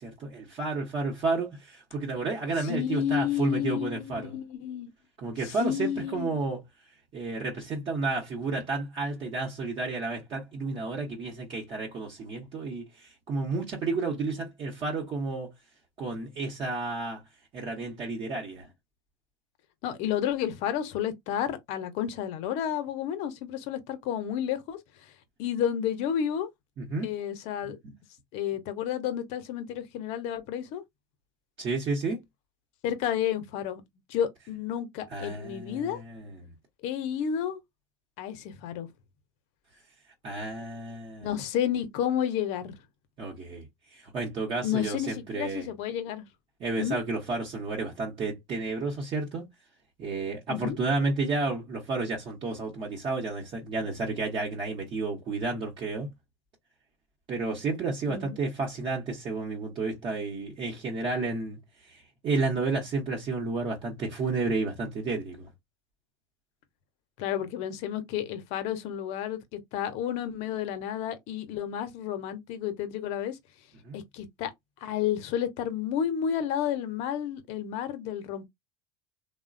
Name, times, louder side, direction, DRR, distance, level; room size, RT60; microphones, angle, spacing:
voice 1, 0.0-4.4 5.2-6.6 7.1-15.5 16.0-17.2 17.5-18.7 26.8-27.1 27.6-27.9 31.6-32.2 35.1-36.5 40.2-41.3 43.2-45.7 46.6-49.4 50.0-56.1 57.3-65.5 73.8-74.0, right 3 dB, 40° right, 0.9 m, -31 dB
voice 2, 2.7-4.9 5.4-6.4 19.8-24.8 25.4-26.5 27.0-27.8 28.3-30.8 32.8-33.8 34.1-36.0 36.8-37.6 38.2-38.9 41.2-42.8 44.6-46.2 46.8-47.0 50.5-50.8 58.1-58.4 67.2-73.4 73.9-74.5 74.8-78.5, left 9 dB, 60° left, 0.7 m, -31 dB
3.0 x 2.1 x 2.5 m
hypercardioid pair, 95°, 13 cm